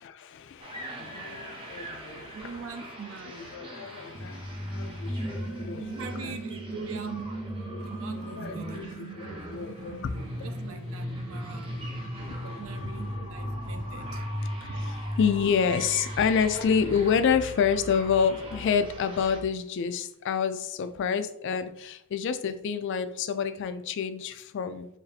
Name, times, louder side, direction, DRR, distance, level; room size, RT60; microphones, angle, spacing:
voice 1, 0.0-2.5 3.4-5.9 6.2-6.3 7.7-7.8 8.1-10.5 11.3-11.4 12.0-12.4 13.2-13.3 14.6-24.9, left 6 dB, 55° left, 0.3 m, -29 dB
sound 1, 0.6-19.4, equal, 25° right, 0.6 m, -37 dB
voice 2, 2.3-3.5 5.4-7.5 7.8-9.1 10.4-11.9 12.4-14.2 14.7-14.9 18.5-18.6, right 5 dB, 65° right, 0.5 m, -42 dB
3.1 x 2.7 x 4.0 m
head